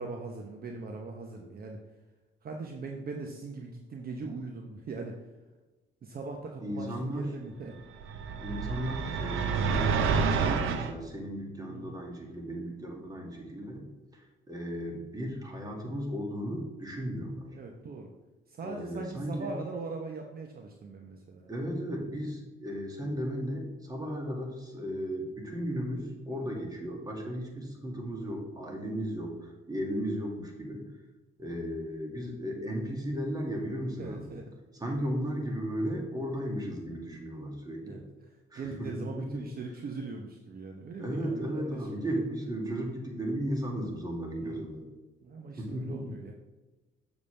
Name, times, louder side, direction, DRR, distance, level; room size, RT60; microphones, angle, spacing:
voice 1, 0.0-1.8 2.4-5.2 6.0-7.8 11.7-12.0 17.5-18.1 18.5-21.5 28.7-28.8 34.0-34.5 37.8-42.1 44.4-44.7 45.2-46.3, right 3 dB, 50° right, 2 dB, 0.9 m, -40 dB
voice 2, 6.6-7.3 8.4-13.9 14.1-17.5 18.6-19.6 21.5-30.9 31.4-34.3 34.7-38.0 38.5-39.4 41.0-44.8 45.6-46.1, equal, 20° right, 0 dB, 2.1 m, -35 dB
sound 1, 8.0-10.9, right 5 dB, 85° right, 0.7 m, -28 dB
7.0 x 6.8 x 3.3 m, 1.2 s
cardioid pair, 90°, 20 cm